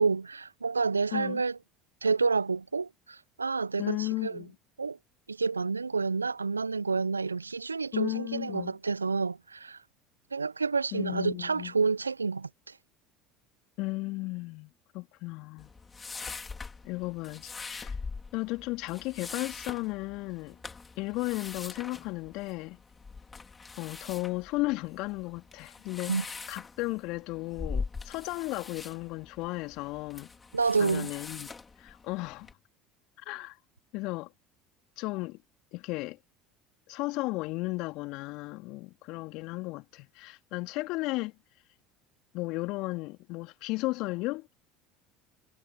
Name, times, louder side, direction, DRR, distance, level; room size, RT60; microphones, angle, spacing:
voice 1, 0.0-1.6 2.0-4.4 4.8-5.0 5.3-9.8 10.3-12.7 26.1-26.2 30.5-31.1, right 4 dB, 85° right, 0.9 m, -29 dB
voice 2, 1.1-1.4 3.8-4.5 7.9-8.7 10.9-11.7 13.8-15.7 16.2-16.4 16.8-18.0 18.3-20.6 21.0-22.8 23.8-30.3 30.8-31.5 31.8-32.5 33.2-33.6 33.9-34.3 35.0-35.4 35.7-36.2 36.9-41.3 42.3-44.5, left 22 dB, 55° left, 2.8 m, -35 dB
sound 1, 15.6-32.5, left 4 dB, 20° left, 4.5 m, -43 dB
figure-of-eight pair, 65°, 0 cm